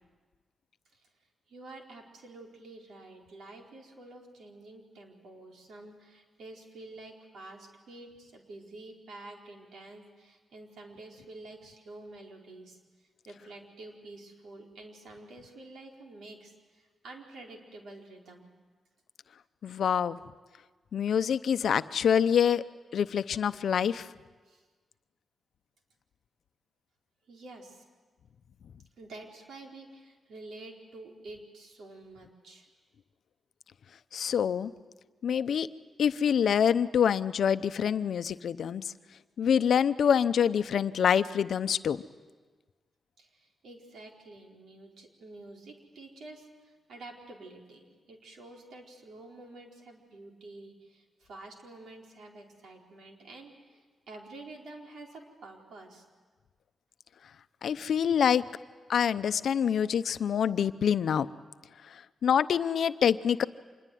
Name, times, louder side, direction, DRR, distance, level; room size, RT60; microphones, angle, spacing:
voice 1, 1.5-12.8 13.2-18.5 24.5-24.6 27.3-27.8 29.0-32.7 43.2-56.1, right 2 dB, 85° right, 1 dB, 4.4 m, -49 dB
voice 2, 19.6-20.2 20.9-22.6 22.9-24.1 34.1-34.7 35.2-35.7 36.0-38.9 39.4-42.0 57.6-58.4 58.9-61.3 62.2-63.4, left 8 dB, 70° left, 12 dB, 0.7 m, -26 dB
26.0 x 21.5 x 9.3 m, 1.4 s
wide cardioid pair, 145°, 0 cm